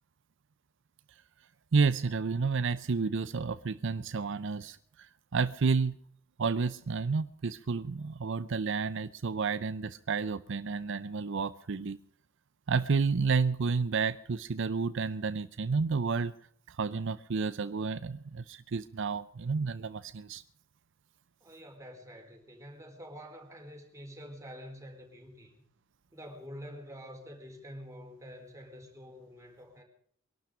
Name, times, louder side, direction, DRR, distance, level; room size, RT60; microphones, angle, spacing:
voice 1, 1.7-5.9 6.4-12.0 12.7-16.3 16.7-20.4, right 4 dB, 65° right, 14 dB, 0.6 m, -31 dB
voice 2, 21.4-25.5 26.1-29.8, equal, 15° right, 1 dB, 4.2 m, -47 dB
23.0 x 12.0 x 5.0 m, 0.64 s
head